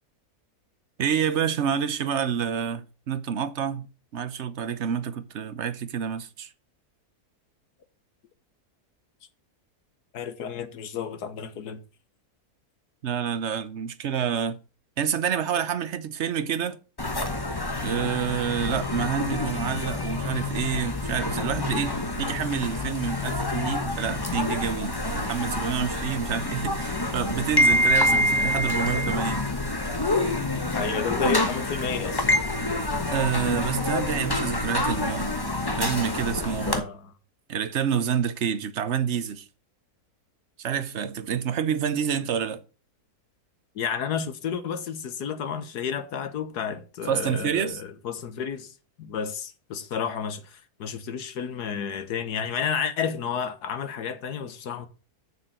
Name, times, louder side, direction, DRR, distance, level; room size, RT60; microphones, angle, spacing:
voice 1, 1.0-3.9 4.1-6.5 13.0-14.6 15.0-16.8 17.8-29.5 33.1-35.4 35.8-36.8 37.5-39.4 40.6-42.6 47.1-47.8, right 8 dB, 50° right, 1.1 m, -28 dB
voice 2, 10.1-11.8 28.1-28.2 30.7-32.3 36.7-37.1 43.7-48.7 49.0-54.9, left 7 dB, 85° left, 1.7 m, -31 dB
sound 1, 17.0-36.8, left 1 dB, 15° left, 1.1 m, -27 dB
7.2 x 6.8 x 6.7 m
omnidirectional pair, 1.6 m